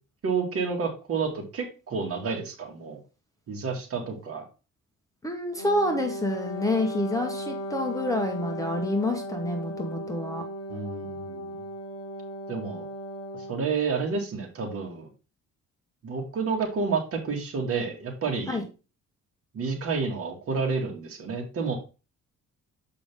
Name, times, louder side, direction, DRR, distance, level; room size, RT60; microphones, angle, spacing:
voice 1, 0.2-3.0 3.5-4.4 10.7-11.6 12.5-12.9 13.5-15.1 16.0-18.6 19.5-21.8, right 5 dB, 50° right, 2 dB, 2.0 m, -30 dB
voice 2, 5.2-10.4 18.5-18.6, left 1 dB, 10° left, 4 dB, 1.0 m, -28 dB
Wind instrument woodwind instrument, 5.5-13.7, equal, 55° left, 1.4 m, -36 dB
7.0 x 5.2 x 3.5 m, 0.31 s
cardioid pair, 155°, 30 cm